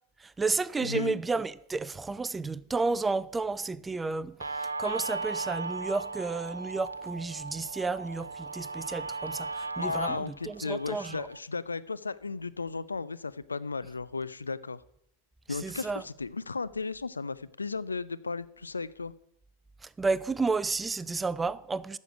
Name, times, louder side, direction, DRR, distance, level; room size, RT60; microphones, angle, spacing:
voice 1, 0.2-11.3 15.5-16.0 19.8-22.0, right 3 dB, 10° right, 0.4 m, -32 dB
voice 2, 0.8-1.2 9.8-14.8 15.5-19.1, left 4 dB, 75° left, 0.4 m, -35 dB
Guitar, 4.4-11.4, right 3 dB, 80° right, 0.6 m, -37 dB
14.0 x 6.5 x 6.1 m
figure-of-eight pair, 90°, 0 cm